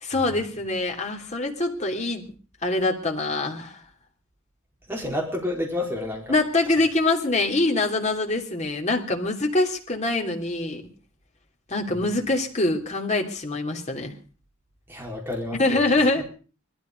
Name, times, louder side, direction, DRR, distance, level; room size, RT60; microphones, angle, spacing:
voice 1, 0.0-2.3 2.6-3.8 6.3-10.9 11.7-14.2 15.6-16.2, left 2 dB, 35° left, 1 dB, 3.0 m, -24 dB
voice 2, 4.9-6.4 11.9-12.0 14.9-16.1, left 1 dB, 10° right, 0 dB, 4.6 m, -30 dB
20.5 x 13.5 x 5.2 m, 0.39 s
head